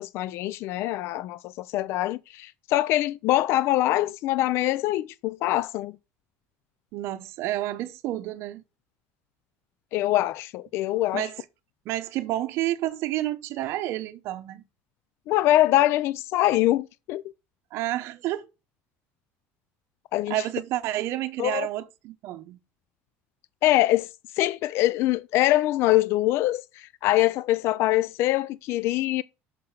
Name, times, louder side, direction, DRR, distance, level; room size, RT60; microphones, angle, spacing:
voice 1, 0.0-5.9 9.9-11.3 15.3-17.2 20.1-20.3 21.4-21.7 23.6-24.1 24.4-29.2, left 15 dB, 55° left, 0.4 m, -24 dB
voice 2, 6.9-8.6 11.1-11.4 11.9-14.6 17.7-18.5 20.3-22.6, right 14 dB, 55° right, 0.8 m, -30 dB
6.7 x 5.6 x 5.6 m
cardioid pair, 155°, 5 cm